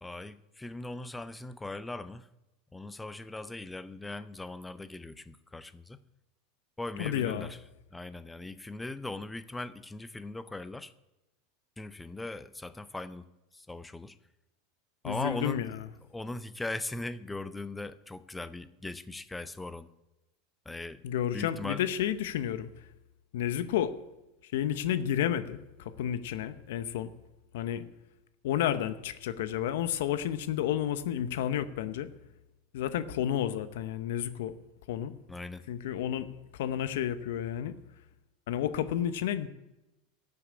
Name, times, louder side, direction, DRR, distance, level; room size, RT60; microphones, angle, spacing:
voice 1, 0.0-2.3 2.7-6.0 6.8-7.6 7.9-10.9 11.8-13.3 13.5-14.2 15.0-15.6 16.1-19.9 20.7-21.0 21.3-21.8 35.3-35.6, left 2 dB, 5° left, 14 dB, 0.5 m, -39 dB
voice 2, 7.0-7.5 15.0-15.7 21.0-22.7 23.3-23.9 24.4-27.1 27.5-27.8 28.4-32.1 32.7-34.5 34.9-35.1 35.7-36.3 36.5-37.7 38.5-39.5, left 10 dB, 75° left, 12 dB, 0.8 m, -31 dB
12.0 x 6.9 x 8.5 m, 0.99 s
supercardioid pair, 155°, 0 cm